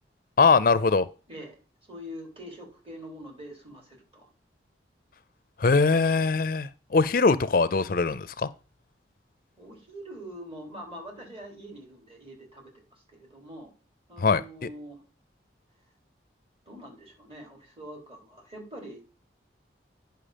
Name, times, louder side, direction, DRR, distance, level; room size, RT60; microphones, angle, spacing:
voice 1, 0.4-1.0 5.6-8.5 14.2-14.4, left 4 dB, 50° left, 15 dB, 0.4 m, -22 dB
voice 2, 1.9-4.3 9.6-13.7 14.1-15.0 16.7-19.1, equal, 30° right, 0 dB, 3.8 m, -44 dB
9.9 x 5.8 x 5.1 m, 0.35 s
head